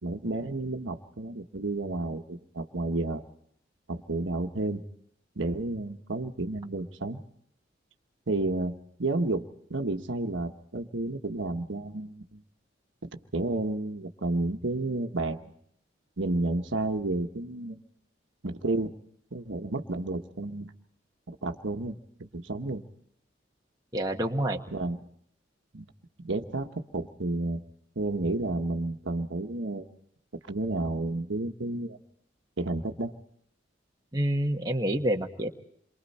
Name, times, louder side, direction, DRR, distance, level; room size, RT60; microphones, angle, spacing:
voice 1, 0.0-3.2 3.9-4.8 5.4-7.2 8.3-8.7 9.0-12.4 13.0-15.5 16.2-17.8 18.4-18.9 19.3-20.7 21.3-22.8 24.7-25.0 25.7-25.9 26.2-27.6 27.9-29.9 30.5-32.0 32.6-33.1, right 2 dB, 75° right, 5 dB, 1.2 m, -31 dB
voice 2, 23.9-24.6 34.1-35.5, right 1 dB, 20° right, 1 dB, 1.4 m, -27 dB
28.0 x 23.5 x 4.3 m, 0.69 s
head